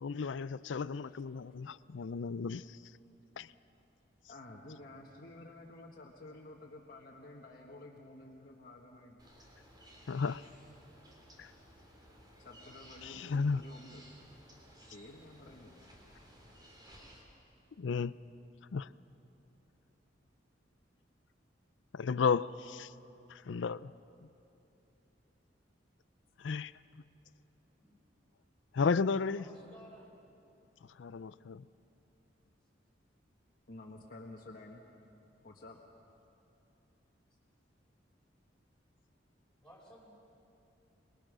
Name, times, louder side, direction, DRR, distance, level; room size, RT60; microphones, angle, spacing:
voice 1, 0.0-2.8 3.4-3.5 10.1-10.4 11.4-11.5 13.0-13.6 17.8-18.1 18.7-18.9 21.9-22.9 23.3-23.9 26.4-26.7 28.7-29.4 31.0-31.7, left 5 dB, 70° left, 0.5 m, -33 dB
voice 2, 4.3-9.2 12.4-14.0 14.9-15.8 33.7-35.1 35.4-35.8, left 2 dB, 50° left, 1.6 m, -51 dB
sound 1, 9.2-17.2, equal, 25° right, 3.6 m, -57 dB
voice 3, 29.3-30.1 39.6-40.0, right 1 dB, 5° left, 5.9 m, -55 dB
25.5 x 21.5 x 6.3 m
head